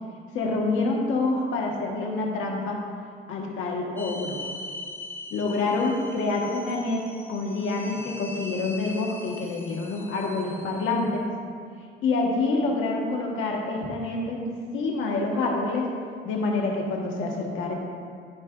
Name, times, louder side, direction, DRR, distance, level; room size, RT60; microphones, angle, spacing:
voice 1, 0.3-2.8 3.3-4.4 5.3-7.0 7.3-11.3 12.0-15.9 16.2-17.7, left 3 dB, 85° left, -1 dB, 1.3 m, -27 dB
sound 1, 4.0-11.1, left 1 dB, 10° left, 0.5 m, -41 dB
13.5 x 4.8 x 2.4 m, 2.1 s
cardioid pair, 90°, 20 cm